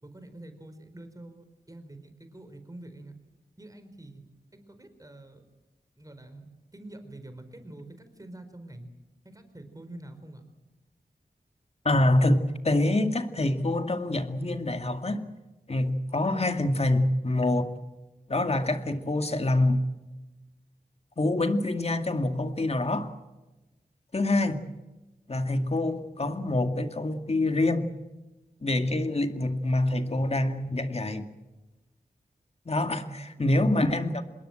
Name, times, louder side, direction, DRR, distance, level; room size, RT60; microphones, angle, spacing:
voice 1, 0.0-3.1 3.6-4.2 4.5-5.4 6.0-6.5 6.7-8.9 9.2-10.4 33.1-33.6, right 1 dB, 25° right, 4.5 m, -46 dB
voice 2, 11.8-15.3 15.7-17.7 18.3-19.8 21.2-23.1 24.1-24.6 25.3-27.9 28.6-31.3 32.7-34.2, left 2 dB, 45° left, 2.2 m, -26 dB
26.0 x 21.5 x 7.8 m
wide cardioid pair, 70°, 15 cm